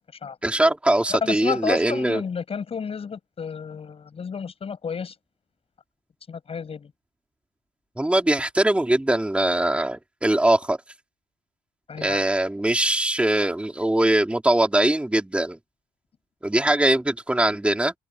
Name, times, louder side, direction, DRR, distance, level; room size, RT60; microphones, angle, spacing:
voice 1, 0.4-2.2 8.0-10.8 12.0-15.6 16.4-17.9, right 1 dB, 5° right, 3.5 m, -21 dB
voice 2, 1.1-5.1 6.3-6.9 11.9-12.2, left 6 dB, 35° left, 6.7 m, -31 dB
cardioid pair, 110°, 17 cm